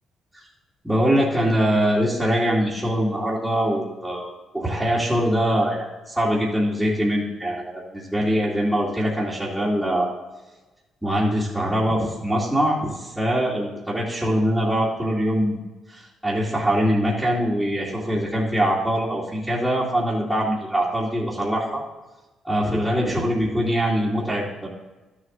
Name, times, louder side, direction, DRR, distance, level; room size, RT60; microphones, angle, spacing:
voice 1, 0.8-10.1 11.0-15.6 15.9-21.8 22.4-24.7, equal, 5° right, -7 dB, 2.4 m, -23 dB
12.0 x 7.3 x 4.0 m, 1.1 s
cardioid pair, 85°, 0 cm